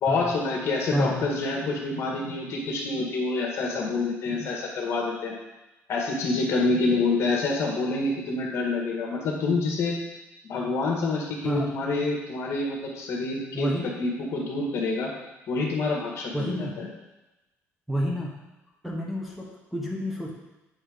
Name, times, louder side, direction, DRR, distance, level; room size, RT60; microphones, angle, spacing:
voice 1, 0.0-5.3 5.9-10.0 10.4-13.7 14.0-15.1 15.5-16.9, left 3 dB, 55° left, -1 dB, 1.8 m, -27 dB
voice 2, 0.9-1.2 11.4-11.7 13.5-13.9 16.3-16.7 17.9-18.3 18.8-20.3, equal, ahead, -3 dB, 1.3 m, -29 dB
8.8 x 3.6 x 5.1 m, 1.0 s
cardioid pair, 135°, 5 cm